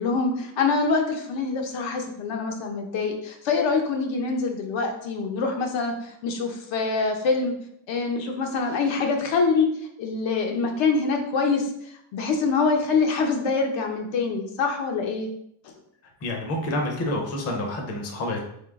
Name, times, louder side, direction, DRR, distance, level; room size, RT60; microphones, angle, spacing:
voice 1, 0.0-7.5 7.9-9.7 10.0-11.7 12.1-15.3, left 4 dB, 65° left, 3 dB, 0.8 m, -25 dB
voice 2, 16.2-18.4, left 1 dB, 30° left, 1 dB, 0.7 m, -28 dB
3.6 x 3.3 x 3.5 m, 0.71 s
cardioid pair, 170°, 49 cm